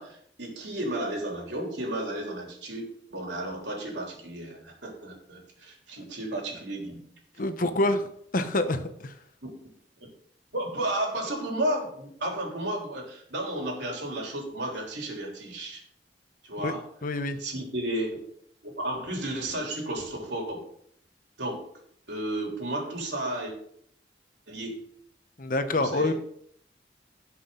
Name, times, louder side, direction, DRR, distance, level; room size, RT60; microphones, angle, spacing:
voice 1, 0.0-7.0 10.0-10.1 10.5-15.8 16.4-16.8 17.4-18.1 18.6-20.7 21.4-21.6 22.1-23.5 24.5-24.9 25.7-26.1, right 1 dB, 85° right, 0 dB, 3.5 m, -33 dB
voice 2, 7.4-8.1 8.3-9.1 16.6-16.7 17.0-17.4 25.4-26.1, left 2 dB, 50° left, 9 dB, 1.0 m, -26 dB
17.5 x 6.1 x 3.9 m, 0.67 s
head